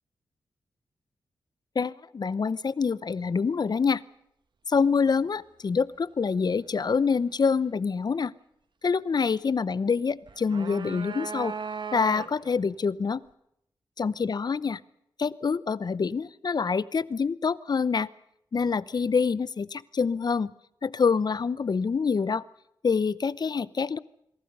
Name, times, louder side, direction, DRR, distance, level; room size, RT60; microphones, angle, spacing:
voice 1, 1.7-4.0 4.7-8.3 8.8-11.5 11.9-13.2 14.0-14.8 15.2-18.1 18.5-20.5 20.8-22.4 22.8-24.0, left 5 dB, 50° left, 18 dB, 0.8 m, -26 dB
sound 1, 10.3-12.6, right 5 dB, 60° right, 1.5 m, -37 dB
26.5 x 22.5 x 5.5 m, 0.77 s
cardioid pair, 55°, 9 cm